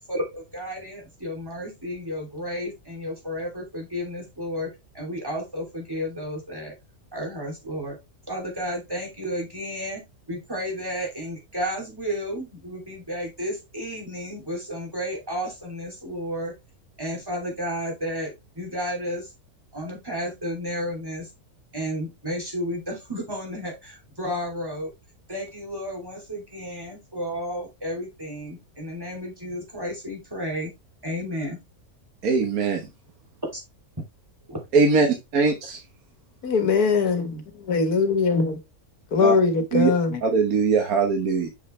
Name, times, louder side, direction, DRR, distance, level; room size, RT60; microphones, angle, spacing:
voice 1, 0.1-6.7 7.1-8.0 8.3-16.5 17.0-19.3 19.7-21.3 21.7-24.9 25.3-30.7 31.0-31.6 34.5-34.6, equal, 15° right, 3.0 m, -32 dB
voice 2, 32.2-32.8 34.7-35.8 39.2-39.3 39.7-39.9 40.2-41.5, right 4 dB, 75° right, 1.7 m, -21 dB
voice 3, 36.4-37.2 37.7-38.6 39.1-40.2, left 4 dB, 85° left, 1.9 m, -21 dB
7.2 x 6.1 x 3.2 m
omnidirectional pair, 1.6 m